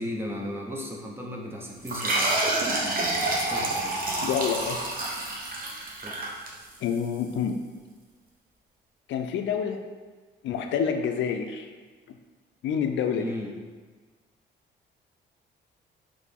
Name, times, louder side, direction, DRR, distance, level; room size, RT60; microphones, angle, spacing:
voice 1, 0.0-2.4 3.4-4.1 6.0-6.3 13.1-13.5, left 1 dB, 10° right, -1 dB, 0.8 m, -35 dB
sound 1, 1.8-7.0, right 2 dB, 45° right, 0.9 m, -28 dB
voice 2, 4.2-4.8 6.8-7.6 9.1-9.8 10.4-11.7 12.6-13.3, left 7 dB, 70° left, 6 dB, 0.4 m, -28 dB
3.9 x 3.2 x 3.5 m, 1.4 s
cardioid pair, 90°, 20 cm